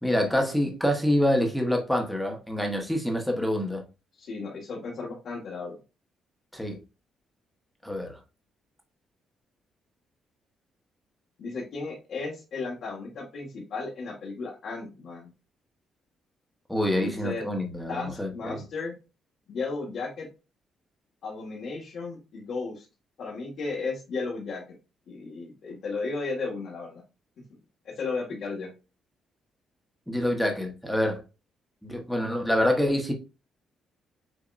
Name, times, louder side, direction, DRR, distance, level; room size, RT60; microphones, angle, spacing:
voice 1, 0.0-3.8 6.5-6.8 7.8-8.1 16.7-18.6 30.1-31.2 31.8-33.1, left 1 dB, ahead, 1.2 m, -26 dB
voice 2, 4.2-5.7 11.4-15.3 17.0-17.5 17.9-19.0 19.5-20.3 21.2-22.8 23.2-24.6 25.1-27.0 27.8-28.7, left 4 dB, 65° left, 1.7 m, -34 dB
7.0 x 2.8 x 2.6 m
cardioid pair, 90°, 0 cm